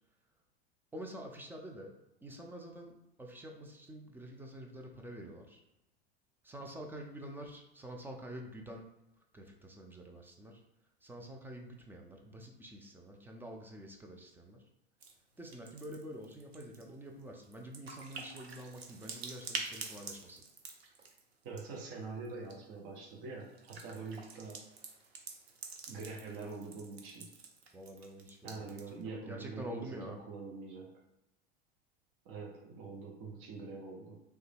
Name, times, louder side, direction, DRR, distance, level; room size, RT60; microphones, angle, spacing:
voice 1, 0.9-5.6 6.4-8.9 9.3-10.6 11.0-14.6 15.4-20.4 27.7-30.2, right 1 dB, 5° right, 1 dB, 0.4 m, -47 dB
sound 1, 15.0-15.1 15.4-21.8 22.2-22.5 23.4-29.0, right 4 dB, 90° right, 0.6 m, -47 dB
voice 2, 21.4-24.6 25.9-27.3 28.4-30.9 32.2-34.2, right 4 dB, 45° right, -1 dB, 0.8 m, -44 dB
3.2 x 2.1 x 3.3 m, 0.90 s
hypercardioid pair, 90°, 30 cm